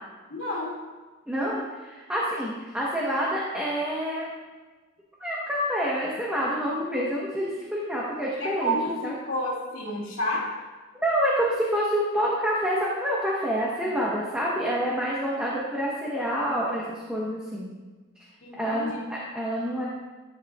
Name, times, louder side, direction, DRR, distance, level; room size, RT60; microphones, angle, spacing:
voice 1, 0.3-0.8 8.4-10.5 18.4-19.0, equal, 75° left, -3 dB, 2.3 m, -30 dB
voice 2, 1.3-4.3 5.2-8.8 9.0-9.1 10.9-17.7 18.5-19.9, equal, 5° right, -6 dB, 1.1 m, -27 dB
14.0 x 7.6 x 2.4 m, 1.3 s
head